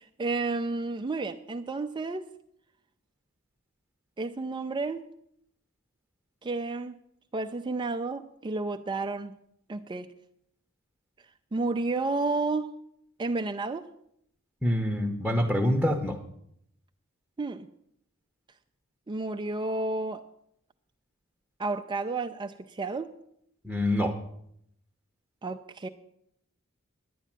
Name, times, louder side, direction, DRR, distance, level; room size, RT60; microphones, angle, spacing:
voice 1, 0.0-2.3 4.2-5.0 6.4-7.0 7.3-9.4 9.7-10.1 11.5-12.7 13.2-13.9 17.4-17.7 19.1-20.2 21.6-23.1 25.4-25.9, right 3 dB, 20° right, 5 dB, 0.4 m, -31 dB
voice 2, 14.6-16.2 23.6-24.2, left 1 dB, ahead, 2 dB, 0.9 m, -26 dB
11.0 x 9.4 x 7.4 m, 0.73 s
head